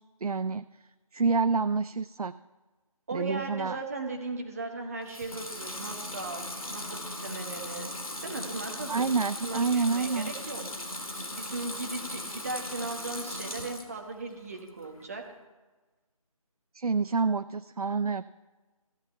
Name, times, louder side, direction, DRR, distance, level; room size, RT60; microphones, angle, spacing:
voice 1, 0.2-0.6 1.1-2.3 3.1-3.8 8.9-10.3 16.7-18.2, right 4 dB, 80° right, 13 dB, 0.4 m, -28 dB
voice 2, 3.1-7.9 8.2-9.0 9.4-10.6 11.3-15.2, right 3 dB, 25° right, 2 dB, 1.3 m, -37 dB
Water tap faucet / Sink (filling or washing) / Liquid, 5.0-14.0 14.4-15.1, left 1 dB, 70° left, 2.1 m, -38 dB
14.5 x 5.8 x 8.0 m, 1.2 s
figure-of-eight pair, 160°, 19 cm